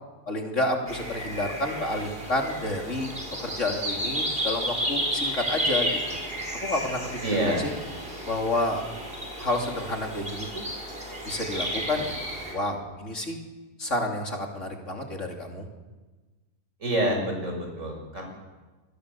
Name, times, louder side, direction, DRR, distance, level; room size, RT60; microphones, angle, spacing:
voice 1, 0.3-3.2 3.4-6.2 6.6-7.0 7.3-7.7 8.3-8.9 9.4-10.7 11.2-12.2 12.5-13.4 13.8-15.7, left 1 dB, 55° left, 1 dB, 3.4 m, -30 dB
sound 1, 0.9-12.5, equal, 35° right, 5.8 m, -32 dB
voice 2, 7.2-7.7 16.8-18.2, right 1 dB, 55° right, 2 dB, 7.4 m, -27 dB
27.5 x 21.0 x 7.1 m, 1.2 s
omnidirectional pair, 1.6 m